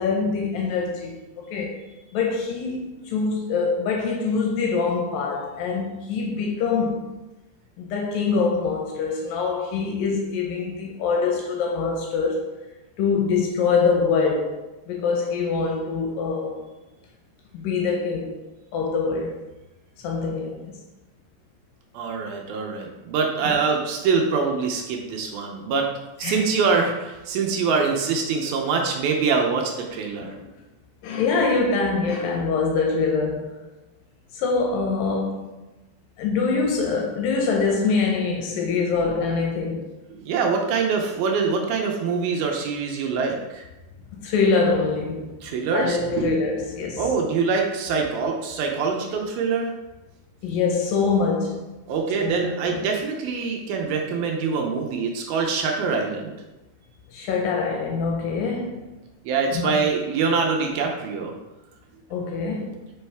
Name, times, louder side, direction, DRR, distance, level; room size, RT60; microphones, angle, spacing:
voice 1, 0.0-1.8 2.1-7.1 7.8-12.4 13.0-16.6 17.5-18.4 18.7-19.4 20.0-20.7 23.4-23.6 26.2-26.4 30.2-30.4 31.0-33.6 34.3-35.5 36.2-39.9 44.1-45.4 45.7-47.1 50.4-51.6 52.2-52.8 57.1-58.9 59.5-59.8 62.1-62.8, left 4 dB, 75° left, 2.3 m, -24 dB
voice 2, 21.9-25.9 26.2-30.3 39.0-39.1 40.1-43.6 45.4-46.6 47.0-49.7 51.9-56.4 59.2-61.3, right 5 dB, 80° right, 2.5 m, -24 dB
5.4 x 5.3 x 3.4 m
omnidirectional pair, 4.4 m